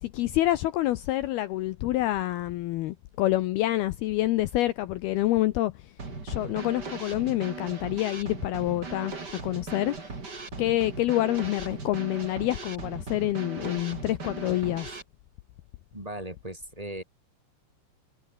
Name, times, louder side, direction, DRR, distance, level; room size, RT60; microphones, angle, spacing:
voice 1, 0.0-5.9 6.2-9.1 9.4-9.9 10.6-14.9, left 16 dB, 80° left, 2.2 m, -27 dB
Drum kit / Snare drum, 6.0-15.0, right 4 dB, 25° right, 3.6 m, -38 dB
voice 2, 15.9-17.0, right 1 dB, 10° right, 4.7 m, -37 dB
omnidirectional pair, 5.4 m